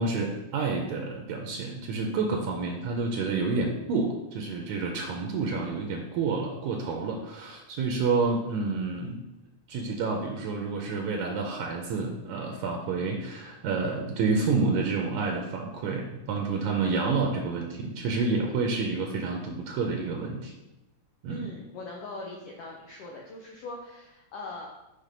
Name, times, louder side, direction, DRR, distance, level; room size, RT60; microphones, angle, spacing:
voice 1, 0.0-9.2 9.7-20.5 21.2-21.4, right 4 dB, 75° right, 2 dB, 2.0 m, -29 dB
voice 2, 21.3-24.7, left 2 dB, 75° left, -1 dB, 1.4 m, -41 dB
7.5 x 3.7 x 5.2 m, 0.95 s
omnidirectional pair, 3.6 m